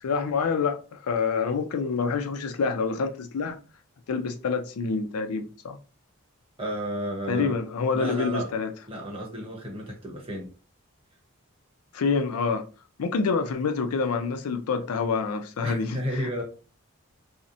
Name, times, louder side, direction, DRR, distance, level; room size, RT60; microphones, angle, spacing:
voice 1, 0.0-3.6 4.1-5.8 7.3-8.7 11.9-12.7 13.0-16.4, left 5 dB, 85° left, 0.4 m, -27 dB
voice 2, 6.6-7.6 7.9-8.5 8.9-10.5 15.6-16.4, equal, 25° right, 0.8 m, -32 dB
2.8 x 2.0 x 2.5 m
head